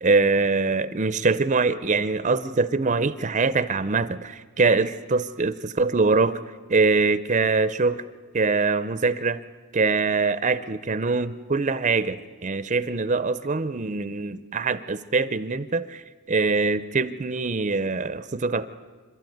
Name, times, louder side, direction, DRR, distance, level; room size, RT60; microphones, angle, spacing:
voice 1, 0.0-6.4 6.7-8.0 8.3-9.4 9.7-16.0 16.3-18.7, right 3 dB, 35° right, 14 dB, 0.6 m, -23 dB
27.0 x 13.0 x 9.3 m, 1.4 s
head